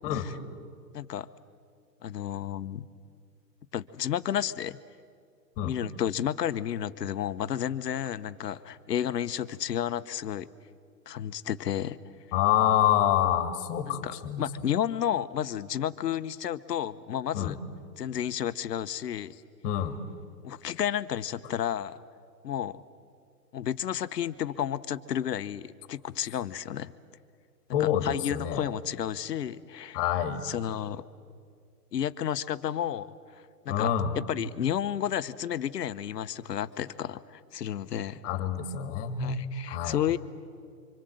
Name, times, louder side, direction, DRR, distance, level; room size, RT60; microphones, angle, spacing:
voice 1, 0.9-1.3 2.0-2.9 3.7-4.8 5.6-10.5 11.1-12.0 13.9-17.6 18.0-19.3 20.4-22.0 22.4-22.8 23.5-26.9 27.8-30.0 30.4-31.0 31.9-33.1 33.6-33.9 34.3-38.2 39.2-40.2, left 10 dB, 75° left, 13 dB, 1.0 m, -31 dB
voice 2, 12.3-14.5 17.3-17.5 19.6-19.9 27.7-28.7 29.9-30.5 33.7-34.1 38.2-40.0, left 10 dB, 35° left, 9 dB, 2.1 m, -27 dB
27.0 x 25.5 x 7.8 m, 2.2 s
hypercardioid pair, 135°, 49 cm